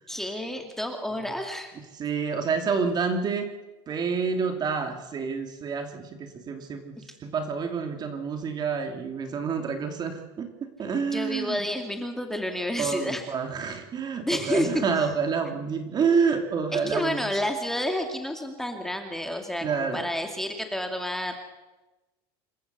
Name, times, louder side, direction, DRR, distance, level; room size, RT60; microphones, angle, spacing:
voice 1, 0.1-1.7 11.1-13.2 14.2-14.8 16.7-21.3, left 1 dB, 5° left, 4 dB, 2.5 m, -30 dB
voice 2, 1.9-3.5 3.9-11.6 12.8-17.3 19.6-20.1, right 5 dB, 35° right, 6 dB, 2.8 m, -28 dB
27.0 x 14.5 x 6.9 m, 1.1 s
supercardioid pair, 125°, 12 cm